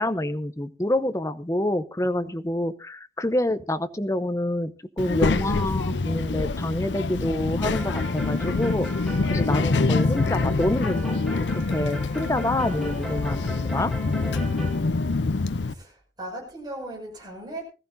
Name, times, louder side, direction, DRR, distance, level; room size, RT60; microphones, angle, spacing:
voice 1, 0.0-4.7 5.0-8.9 9.3-11.2 11.7-13.4 13.7-14.0, left 1 dB, 15° left, 11 dB, 0.7 m, -27 dB
Child speech kid speaking, 5.0-15.7, left 3 dB, 75° left, 0.6 m, -25 dB
sound 1, 7.7-14.8, left 1 dB, ahead, 2.2 m, -38 dB
voice 2, 15.5-17.6, right 1 dB, 25° right, -1 dB, 6.1 m, -38 dB
20.0 x 14.5 x 2.6 m, 0.34 s
head